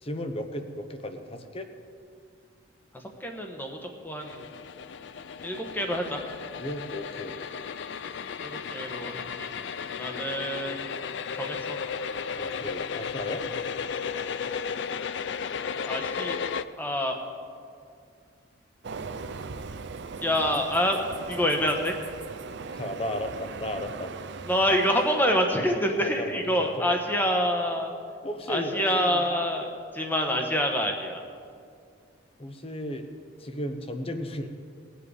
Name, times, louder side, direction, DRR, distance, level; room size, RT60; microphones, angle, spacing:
voice 1, 0.0-1.7 6.6-7.3 12.3-13.4 22.7-24.1 26.0-27.0 28.2-29.2 32.4-33.1 33.4-34.5, left 1 dB, 25° left, 7 dB, 0.8 m, -35 dB
voice 2, 2.9-3.8 4.0-4.4 5.4-6.2 8.4-9.5 10.0-10.9 11.3-11.8 15.8-16.4 16.8-17.2 20.2-21.0 21.3-22.0 24.5-27.9 28.5-31.2, equal, 10° left, 3 dB, 1.1 m, -27 dB
sound 1, 4.2-16.7, left 6 dB, 55° left, 0.4 m, -34 dB
Train, 18.8-25.6, right 4 dB, 55° right, 0.5 m, -39 dB
20.5 x 7.6 x 4.9 m, 2.3 s
head